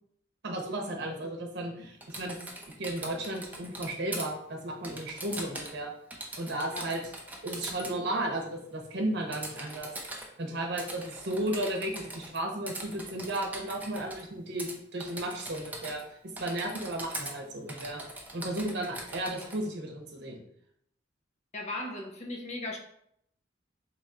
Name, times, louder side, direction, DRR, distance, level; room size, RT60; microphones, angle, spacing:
voice 1, 0.4-5.9 6.4-7.0 7.4-10.1 10.4-18.0 18.3-20.4, right 1 dB, 60° right, 1 dB, 0.8 m, -34 dB
Typing, 2.0-4.3 4.8-5.8 6.1-8.0 9.3-10.3 10.8-12.4 12.7-14.2 14.6-14.7 15.0-16.1 16.4-17.3 17.7-19.6, right 1 dB, 10° right, 0.6 m, -41 dB
voice 2, 21.5-22.8, left 2 dB, 35° left, 0 dB, 0.6 m, -37 dB
3.0 x 2.5 x 4.3 m, 0.70 s
head